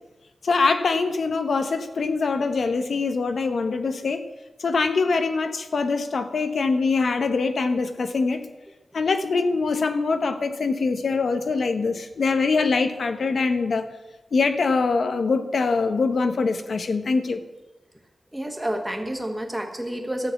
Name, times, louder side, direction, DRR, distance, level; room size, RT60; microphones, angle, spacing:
voice 1, 0.4-4.2 4.6-8.5 8.9-13.9 14.3-17.4, left 4 dB, 65° left, 8 dB, 1.0 m, -23 dB
voice 2, 18.3-20.3, right 1 dB, 5° right, 3 dB, 1.5 m, -29 dB
13.0 x 6.1 x 8.3 m, 1.1 s
wide cardioid pair, 160°, 0 cm